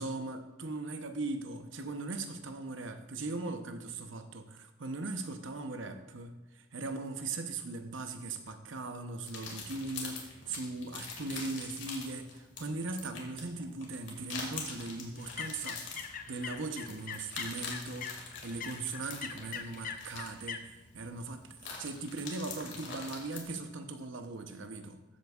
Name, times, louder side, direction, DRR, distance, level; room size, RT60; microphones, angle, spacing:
voice 1, 0.0-18.1 18.4-25.0, right 3 dB, 75° right, 7 dB, 0.8 m, -39 dB
sound 1, 9.3-23.4, left 4 dB, 70° left, 2.1 m, -45 dB
sound 2, 15.2-20.6, left 7 dB, 40° left, 0.5 m, -43 dB
14.0 x 7.9 x 2.4 m, 1.1 s
head